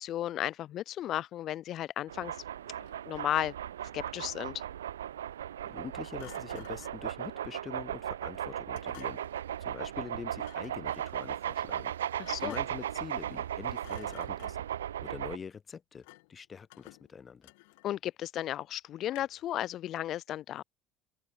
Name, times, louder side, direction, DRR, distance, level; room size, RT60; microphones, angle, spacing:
voice 1, 0.0-2.4 3.1-3.5 3.9-4.6 12.2-12.5 17.8-20.6, left 12 dB, 50° left, 0.9 m, -34 dB
sound 1, 2.1-15.4, right 10 dB, 80° right, 0.5 m, -37 dB
Thump thud, 2.6-3.4 6.2-7.1 8.7-9.4 10.3-10.8 12.2-12.9 13.3-13.5 13.8-14.8 16.0-16.4 16.7-18.1 19.1-19.5, left 29 dB, 70° left, 3.0 m, -54 dB
voice 2, 5.6-9.2 9.6-11.9 12.4-14.6 15.0-17.5, left 6 dB, 30° left, 4.7 m, -44 dB
open air
figure-of-eight pair, 65°, 0 cm